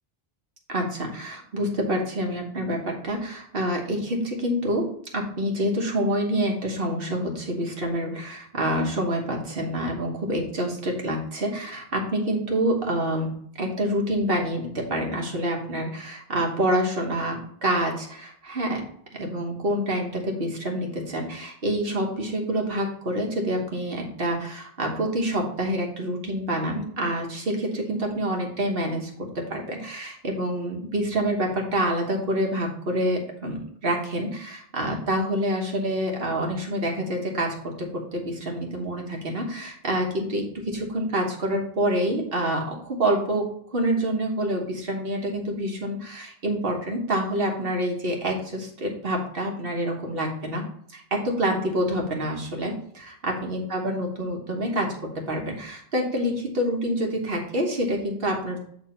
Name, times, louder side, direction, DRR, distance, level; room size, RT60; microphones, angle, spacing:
voice 1, 0.7-18.8 19.1-29.1 29.3-43.5 43.7-50.6 50.9-58.6, right 1 dB, 65° right, 1 dB, 1.5 m, -27 dB
8.5 x 3.5 x 4.4 m, 0.65 s
omnidirectional pair, 1.0 m